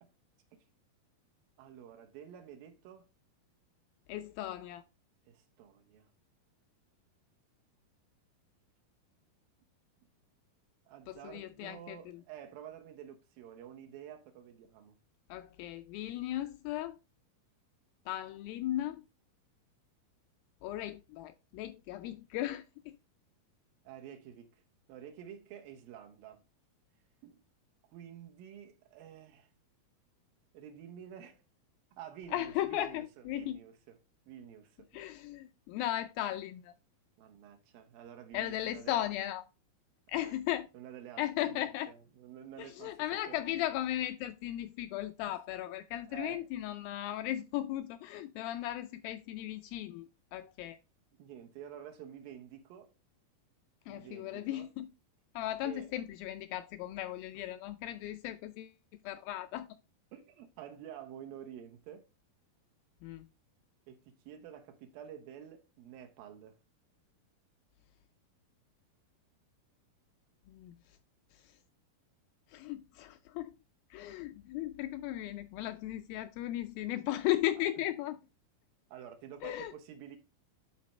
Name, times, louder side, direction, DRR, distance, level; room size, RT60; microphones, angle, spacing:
voice 1, 1.6-3.1 5.3-6.1 10.9-15.0 23.8-24.5 24.9-26.4 27.2-27.4 27.9-29.5 30.5-31.4 32.0-34.0 34.3-34.9 37.2-39.1 40.1-40.4 40.7-43.4 45.3-45.4 46.0-46.5 51.2-52.9 53.9-54.7 55.6-55.9 57.3-57.4 60.1-62.1 63.9-66.6 77.6-77.7 78.9-80.2, right 9 dB, 75° right, 2.4 m, -50 dB
voice 2, 4.1-4.8 11.1-12.0 15.3-17.0 18.1-19.0 20.6-23.0 32.3-33.6 34.9-36.7 38.3-39.4 40.1-40.7 41.2-41.9 42.6-50.1 50.3-50.8 53.9-54.9 55.4-58.7 59.1-59.7 63.0-63.2 70.5-70.8 72.5-73.5 73.9-78.2 79.4-79.7, left 13 dB, 85° left, 2.1 m, -36 dB
11.5 x 4.2 x 3.2 m
omnidirectional pair, 4.5 m